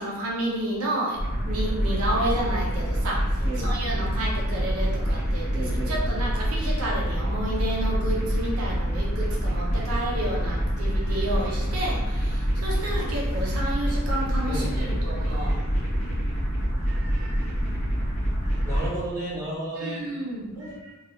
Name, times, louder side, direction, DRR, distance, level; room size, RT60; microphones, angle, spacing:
voice 1, 0.0-15.7 16.8-17.7 18.4-18.7 19.8-21.0, right 1 dB, 75° right, -4 dB, 0.6 m, -31 dB
sound 1, 1.2-18.9, equal, 30° left, 0.7 m, -26 dB
voice 2, 3.4-3.8 5.5-6.2 14.5-15.0 18.6-20.0 20.5-20.7, right 1 dB, 15° right, -10 dB, 1.0 m, -33 dB
3.0 x 2.3 x 2.7 m, 1.0 s
head